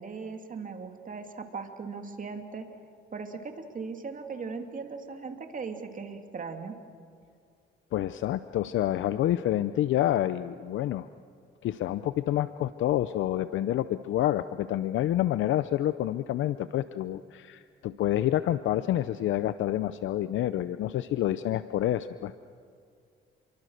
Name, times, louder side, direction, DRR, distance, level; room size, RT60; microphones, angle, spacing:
voice 1, 0.0-2.7 3.1-6.7, right 4 dB, 40° right, 5 dB, 2.8 m, -38 dB
voice 2, 7.9-11.1 11.6-22.3, left 12 dB, 75° left, 13 dB, 0.6 m, -28 dB
29.5 x 23.5 x 6.6 m, 2.3 s
cardioid pair, 90°, 20 cm